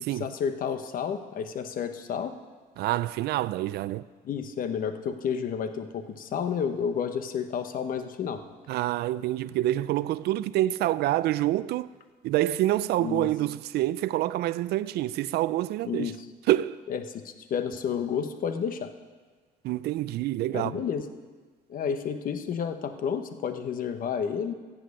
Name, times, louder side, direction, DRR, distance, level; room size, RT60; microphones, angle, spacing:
voice 1, 0.2-2.3 4.2-8.4 13.0-13.3 15.8-16.2 16.9-18.9 20.5-21.1 21.7-24.5, left 7 dB, 55° left, 1.1 m, -31 dB
voice 2, 2.8-4.1 8.7-11.9 12.2-16.1 16.5-16.8 19.6-20.8, right 15 dB, 75° right, 0.4 m, -27 dB
15.0 x 7.7 x 6.5 m
cardioid pair, 110°, 17 cm